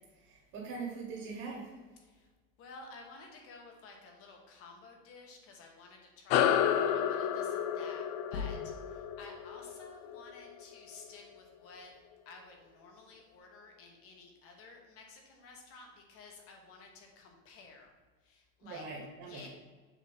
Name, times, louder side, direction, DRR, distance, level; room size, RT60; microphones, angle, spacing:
voice 1, 0.2-1.7 18.6-19.5, right 4 dB, 40° right, -2 dB, 1.7 m, -42 dB
voice 2, 2.0-2.3 2.6-8.0 8.3-11.9 12.2-17.9 18.2-18.8 19.2-19.5, left 3 dB, 35° left, 2 dB, 1.3 m, -53 dB
sound 1, 6.3-11.1, left 9 dB, 55° left, 0.5 m, -31 dB
sound 2, 8.3-9.3, left 5 dB, 80° left, 1.1 m, -41 dB
7.2 x 3.1 x 5.7 m, 1.4 s
supercardioid pair, 160°, 38 cm